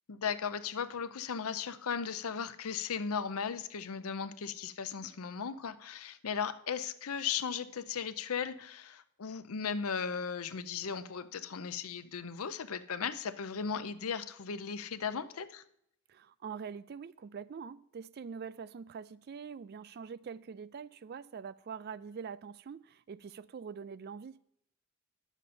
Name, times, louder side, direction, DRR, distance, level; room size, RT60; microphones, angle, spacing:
voice 1, 0.1-15.6, left 6 dB, 75° left, 0.6 m, -37 dB
voice 2, 16.1-24.4, right 6 dB, 45° right, 0.3 m, -44 dB
10.5 x 7.0 x 4.2 m
head